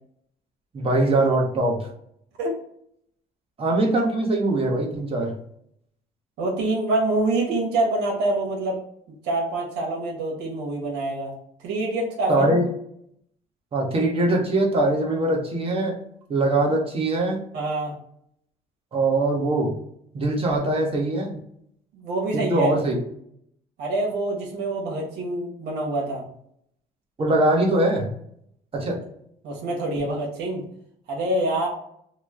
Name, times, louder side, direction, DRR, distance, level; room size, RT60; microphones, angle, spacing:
voice 1, 0.7-1.9 3.6-5.3 12.3-12.7 13.7-16.0 16.3-17.4 18.9-19.7 20.1-21.4 22.3-23.0 27.2-28.1 28.7-29.0 30.0-30.1, right 2 dB, 35° right, 0 dB, 0.9 m, -22 dB
voice 2, 6.4-8.8 9.2-11.3 11.6-12.5 17.5-17.9 21.9-22.7 23.8-26.2 29.4-30.6 31.1-31.7, right 2 dB, 85° right, -1 dB, 1.1 m, -26 dB
3.0 x 2.1 x 3.5 m, 0.70 s
cardioid pair, 110°, 17 cm